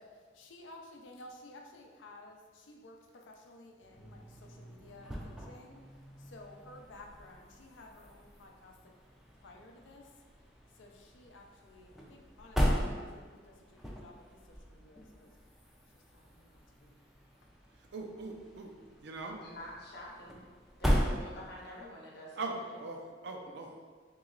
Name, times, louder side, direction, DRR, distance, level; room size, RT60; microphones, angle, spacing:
voice 1, 0.0-5.8 6.2-8.9 9.4-10.1 10.7-15.3 15.9-17.0 21.6-21.9, left 2 dB, 80° left, 1 dB, 0.5 m, -54 dB
sound 1, 3.8-21.9, equal, ahead, 0.4 m, -38 dB
voice 2, 17.9-18.7 19.0-19.4 22.4-23.7, right 3 dB, 60° right, 2 dB, 0.4 m, -40 dB
voice 3, 19.4-20.4 20.8-22.8, left 1 dB, 55° left, -3 dB, 0.8 m, -48 dB
3.0 x 3.0 x 3.7 m, 1.5 s
head